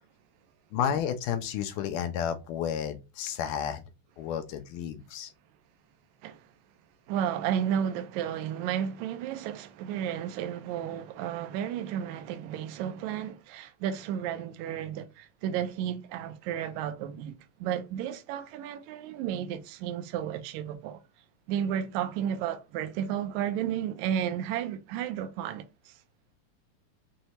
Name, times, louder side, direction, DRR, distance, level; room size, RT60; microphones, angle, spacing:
voice 1, 0.7-3.8 4.2-5.3, left 8 dB, 80° left, 1.9 m, -31 dB
voice 2, 7.1-17.3 17.6-21.0 21.5-25.9, right 9 dB, 85° right, 1.6 m, -32 dB
6.2 x 2.1 x 2.8 m
omnidirectional pair, 4.0 m